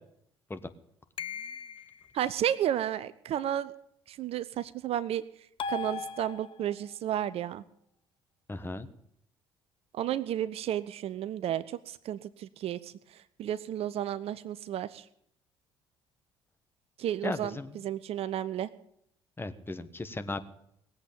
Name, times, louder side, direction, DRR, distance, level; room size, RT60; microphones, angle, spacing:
sound 1, 1.2-2.1 5.6-6.8, left 5 dB, 40° left, 0.9 m, -38 dB
voice 1, 2.1-3.7 4.1-5.2 5.7-7.6 9.9-12.9 13.4-15.0 17.0-18.7, right 11 dB, 50° right, 15 dB, 0.7 m, -32 dB
voice 2, 8.5-8.9 17.2-17.8 19.4-20.4, left 2 dB, 15° left, 10 dB, 1.4 m, -36 dB
19.0 x 8.1 x 8.8 m, 0.72 s
figure-of-eight pair, 55°, 13 cm